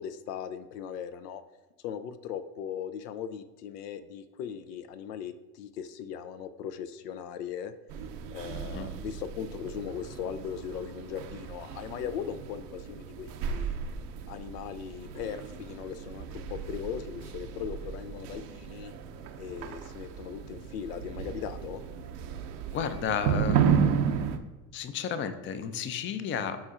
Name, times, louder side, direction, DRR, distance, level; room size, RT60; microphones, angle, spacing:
voice 1, 0.0-1.4 1.8-7.7 8.3-13.8 14.3-18.9 19.4-21.8, left 8 dB, 75° left, 11 dB, 0.5 m, -39 dB
sound 1, 7.9-24.4, right 7 dB, 70° right, 0.7 m, -33 dB
voice 2, 22.7-23.9 24.7-26.6, left 7 dB, 25° left, 11 dB, 0.4 m, -32 dB
9.5 x 4.3 x 2.5 m, 1.1 s
hypercardioid pair, 75°, 48 cm